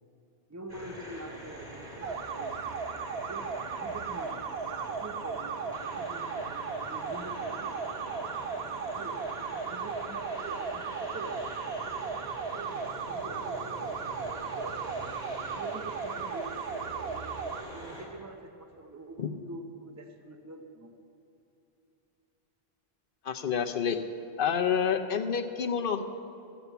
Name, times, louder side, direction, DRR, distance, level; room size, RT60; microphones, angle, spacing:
voice 1, 0.5-2.6 3.1-6.2 6.8-8.2 8.9-12.0 12.5-15.3 15.5-17.3 17.7-21.0, right 2 dB, 20° right, 5 dB, 0.6 m, -45 dB
sound 1, 0.7-18.0, right 1 dB, 45° right, 3.4 m, -43 dB
sound 2, 2.0-17.6, right 6 dB, 80° right, 1.0 m, -36 dB
voice 2, 23.2-24.0 24.4-26.0, left 7 dB, 60° left, 6 dB, 0.8 m, -28 dB
14.0 x 7.1 x 8.1 m, 2.8 s
omnidirectional pair, 1.0 m